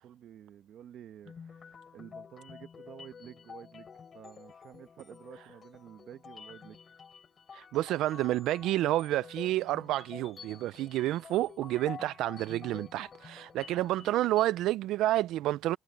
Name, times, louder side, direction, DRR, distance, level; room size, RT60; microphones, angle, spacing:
voice 1, 0.0-1.3 1.9-6.8, right 10 dB, 60° right, 1.2 m, -51 dB
sound 1, 1.3-14.5, left 6 dB, 35° left, 4.8 m, -50 dB
voice 2, 7.5-15.8, right 15 dB, 85° right, 0.3 m, -29 dB
cardioid pair, 120°, 0 cm